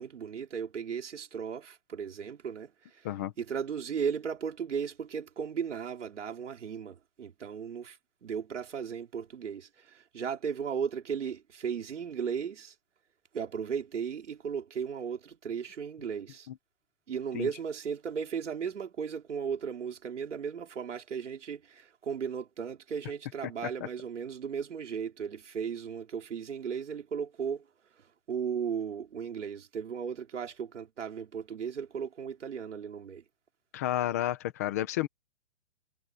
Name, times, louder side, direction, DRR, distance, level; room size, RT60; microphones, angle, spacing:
voice 1, 0.0-12.7 13.3-16.5 17.1-27.6 28.0-33.2, right 7 dB, 70° right, 5.0 m, -36 dB
voice 2, 33.7-35.1, left 13 dB, 15° left, 0.9 m, -31 dB
hypercardioid pair, 175°, 37 cm